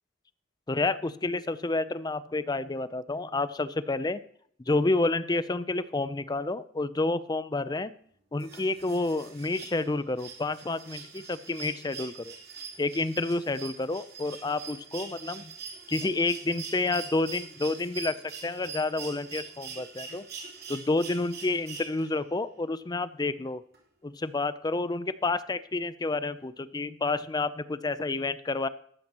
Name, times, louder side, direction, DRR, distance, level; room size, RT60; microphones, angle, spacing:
voice 1, 0.7-4.2 4.7-7.9 8.3-12.3 12.8-15.5 15.9-18.1 18.4-20.3 20.7-23.6 24.0-28.7, left 2 dB, 20° left, 15 dB, 0.5 m, -29 dB
sound 1, 8.4-22.3 23.7-23.8, right 6 dB, 55° right, 3.3 m, -43 dB
14.0 x 12.0 x 2.9 m, 0.63 s
head